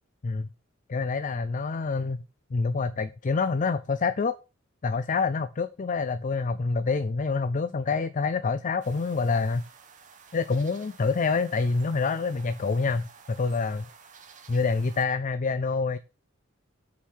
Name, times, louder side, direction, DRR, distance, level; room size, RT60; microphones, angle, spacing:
voice 1, 0.9-2.2 2.5-4.4 4.8-9.6 10.3-13.9 14.5-16.0, left 4 dB, 40° left, 0.4 m, -27 dB
sound 1, 8.8-15.1, right 6 dB, 40° right, 1.3 m, -52 dB
6.7 x 4.7 x 6.2 m
head